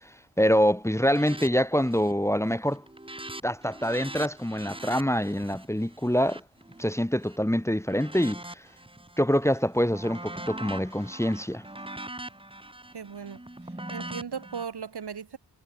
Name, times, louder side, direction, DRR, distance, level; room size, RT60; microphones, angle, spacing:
voice 1, 0.4-2.8 3.4-6.4 6.8-8.4 9.2-11.6, equal, 5° left, 1.5 m, -25 dB
sound 1, 1.0-1.5 1.8-2.2 2.5-7.4 7.9-9.2 9.6-14.6, right 1 dB, 10° right, 2.5 m, -42 dB
voice 2, 12.9-13.4 13.9-15.4, right 6 dB, 65° right, 1.7 m, -37 dB
wide cardioid pair, 70°, 43 cm